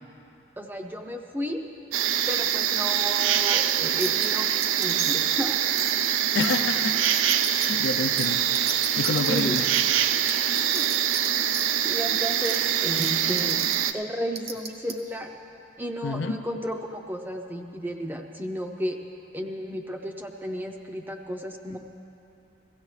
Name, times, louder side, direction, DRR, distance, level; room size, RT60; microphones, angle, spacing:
voice 1, 0.6-1.6 2.3-4.5 4.8-5.8 9.3-9.6 10.7-10.8 11.8-13.6 13.9-15.3 15.8-19.0 19.3-21.8, equal, 10° right, 3 dB, 0.6 m, -33 dB
sound 1, 1.9-13.9, right 10 dB, 75° right, 0.4 m, -24 dB
sound 2, 4.0-4.3 4.6-5.3 5.8-6.0 6.4-6.6 7.1-7.7 8.2-8.3 8.5-9.8 10.3-11.3 11.5-11.6 12.5-12.6 13.0-13.1 13.4-13.8 14.4-14.9, right 5 dB, 50° right, 0.9 m, -32 dB
voice 2, 6.3-7.0 7.5-9.7 16.0-16.4, left 3 dB, 60° left, 8 dB, 0.5 m, -28 dB
17.0 x 15.0 x 3.2 m, 2.8 s
head